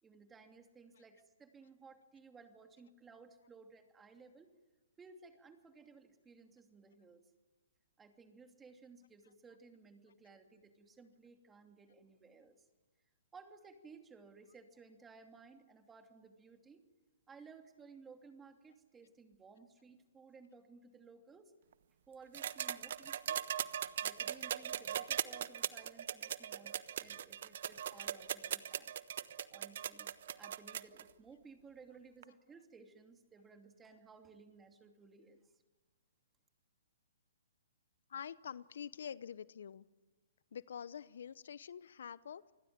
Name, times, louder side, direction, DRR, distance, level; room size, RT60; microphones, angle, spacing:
voice 1, 0.0-4.5 5.0-7.2 8.0-12.6 13.3-16.8 17.3-21.5 22.1-23.5 24.0-28.9 29.5-35.5, right 4 dB, 10° right, 5 dB, 2.8 m, -58 dB
sound 1, 22.3-31.0 32.2-32.3, right 9 dB, 60° right, 1.1 m, -39 dB
voice 2, 38.1-39.9 40.5-42.5, left 8 dB, 70° left, 18 dB, 0.8 m, -46 dB
28.0 x 20.5 x 9.6 m, 1.3 s
hypercardioid pair, 140°, 0 cm